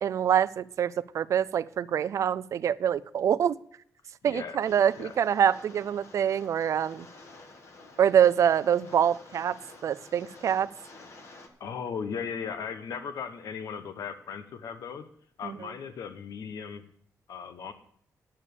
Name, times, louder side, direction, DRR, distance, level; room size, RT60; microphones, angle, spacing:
voice 1, 0.0-3.6 4.2-7.0 8.0-9.6 9.8-10.7 15.4-15.5, right 9 dB, 60° right, 16 dB, 0.4 m, -25 dB
voice 2, 4.2-5.1 11.6-15.0 15.4-16.8 17.3-17.7, left 6 dB, 80° left, 10 dB, 1.0 m, -37 dB
Rain, 4.6-11.5, left 2 dB, 50° left, 1.7 m, -51 dB
9.9 x 7.1 x 8.3 m, 0.63 s
wide cardioid pair, 170°, 6 cm